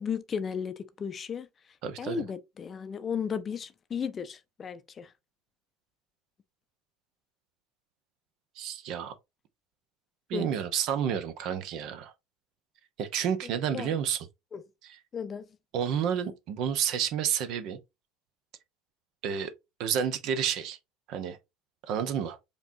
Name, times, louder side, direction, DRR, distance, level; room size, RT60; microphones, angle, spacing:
voice 1, 0.0-1.5 2.0-5.1 10.3-10.5 13.7-13.9 14.5-14.6 15.1-15.5, left 6 dB, 30° left, 0.5 m, -34 dB
voice 2, 1.8-2.2 8.6-9.1 10.3-12.1 13.0-14.3 14.8-15.0 15.7-17.8 19.2-19.5 19.8-20.8 21.1-21.4 21.9-22.4, right 8 dB, 50° right, 0.7 m, -30 dB
5.1 x 3.0 x 2.7 m
figure-of-eight pair, 70°, 0 cm